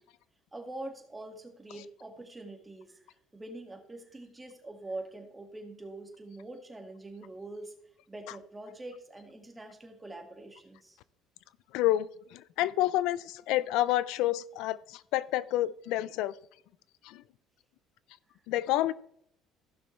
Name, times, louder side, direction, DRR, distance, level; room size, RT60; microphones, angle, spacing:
voice 1, 0.5-3.0 3.3-7.7 8.1-11.0, right 2 dB, 15° right, 4 dB, 2.0 m, -44 dB
voice 2, 11.7-16.3 17.0-17.2 18.5-18.9, left 14 dB, 75° left, 19 dB, 0.4 m, -29 dB
15.0 x 6.2 x 3.3 m, 0.70 s
supercardioid pair, 90°, 0 cm